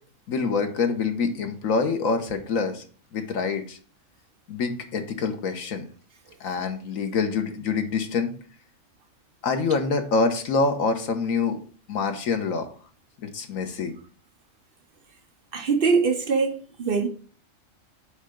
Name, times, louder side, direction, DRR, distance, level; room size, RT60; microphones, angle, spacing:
voice 1, 0.3-2.8 3.1-3.8 4.5-5.9 6.4-8.4 9.4-11.6 11.9-12.7 13.2-13.9, left 4 dB, 90° left, 1.5 m, -26 dB
voice 2, 15.5-17.1, right 5 dB, 50° right, 0.8 m, -23 dB
8.7 x 3.4 x 5.1 m
omnidirectional pair, 1.4 m